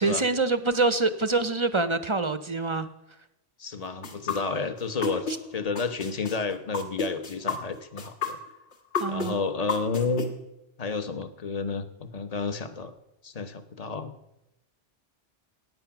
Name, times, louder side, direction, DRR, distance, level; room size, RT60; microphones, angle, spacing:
voice 1, 0.0-2.9 5.3-5.4 9.0-9.4, right 3 dB, 35° right, 12 dB, 0.5 m, -25 dB
voice 2, 3.6-8.4 9.1-10.3 10.8-12.9 13.2-14.1, left 4 dB, 35° left, 10 dB, 0.9 m, -31 dB
sound 1, 4.0-5.4 5.8-10.2, left 4 dB, 70° left, 1.9 m, -30 dB
17.5 x 8.7 x 5.9 m, 0.91 s
omnidirectional pair, 1.2 m